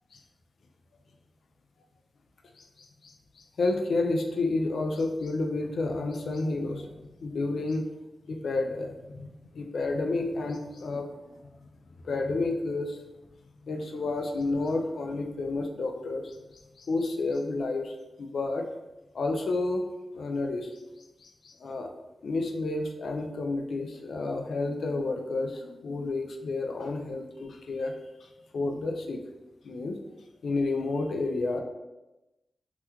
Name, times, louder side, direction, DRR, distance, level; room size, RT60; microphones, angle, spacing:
voice 1, 2.5-7.9 8.3-9.3 9.5-11.4 12.0-13.0 13.6-16.4 16.8-18.6 19.1-19.8 20.1-20.8 21.2-21.9 22.2-27.9 28.2-29.2 29.6-30.0 30.4-31.6, left 3 dB, 80° left, 4 dB, 0.4 m, -30 dB
3.0 x 2.2 x 3.5 m, 1.0 s
cardioid pair, 65°, 0 cm